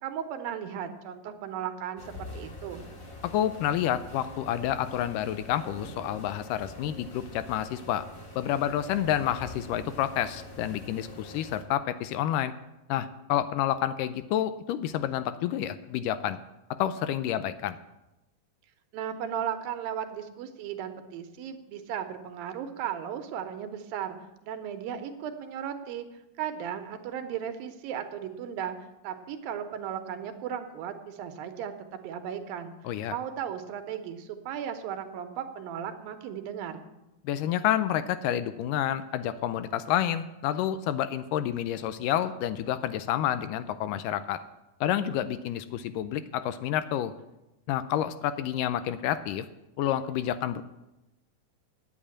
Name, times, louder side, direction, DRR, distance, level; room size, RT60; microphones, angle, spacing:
voice 1, 0.0-2.8 18.9-24.2 24.4-26.1 26.4-28.8 29.0-32.7 33.1-36.8, right 9 dB, 85° right, 7 dB, 2.8 m, -36 dB
sound 1, 2.0-11.6, left 1 dB, 30° left, 1.7 m, -45 dB
voice 2, 3.2-8.0 8.4-12.5 12.9-16.4 16.8-17.8 32.8-33.2 37.2-44.4 44.8-47.1 47.7-49.5 49.8-50.6, left 11 dB, 80° left, 12 dB, 2.0 m, -29 dB
9.4 x 8.6 x 8.5 m, 0.96 s
omnidirectional pair, 4.0 m